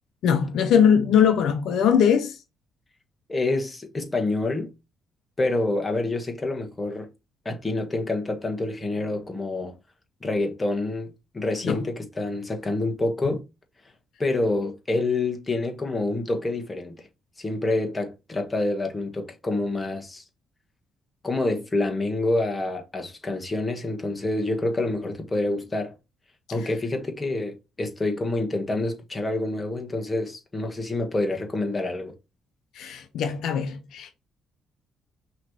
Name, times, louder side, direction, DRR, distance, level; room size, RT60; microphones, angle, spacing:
voice 1, 0.2-2.4 11.6-11.8 32.8-34.1, left 8 dB, 80° left, 0.7 m, -21 dB
voice 2, 3.3-4.7 5.4-7.1 7.4-9.8 10.2-13.4 14.2-17.1 17.4-20.2 21.2-25.9 26.5-32.1, left 2 dB, 20° left, 1.5 m, -27 dB
5.8 x 3.1 x 2.8 m
cardioid pair, 90°, 0 cm